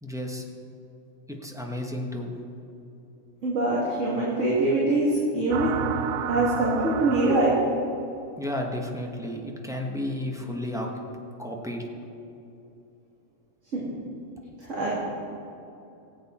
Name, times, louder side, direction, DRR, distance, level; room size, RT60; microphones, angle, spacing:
voice 1, 0.0-0.4 1.3-2.3 8.4-10.9 11.4-11.8, left 1 dB, ahead, 0 dB, 1.1 m, -32 dB
voice 2, 3.4-5.7 6.3-7.6 13.7-13.8 14.6-14.9, right 2 dB, 55° right, -5 dB, 2.1 m, -23 dB
sound 1, 5.5-7.9, right 9 dB, 75° right, 1.0 m, -31 dB
19.0 x 8.2 x 4.3 m, 2.8 s
omnidirectional pair, 1.5 m